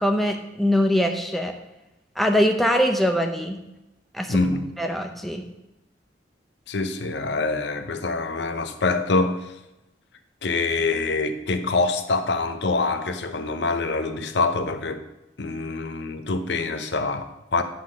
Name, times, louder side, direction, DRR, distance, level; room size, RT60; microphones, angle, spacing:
voice 1, 0.0-1.5 2.2-3.6 4.1-4.4 4.8-5.4, equal, ahead, 4 dB, 0.7 m, -22 dB
voice 2, 4.3-4.7 6.7-9.5 10.4-15.1 15.4-17.6, left 3 dB, 80° left, 9 dB, 0.7 m, -25 dB
10.0 x 3.8 x 6.2 m, 0.95 s
head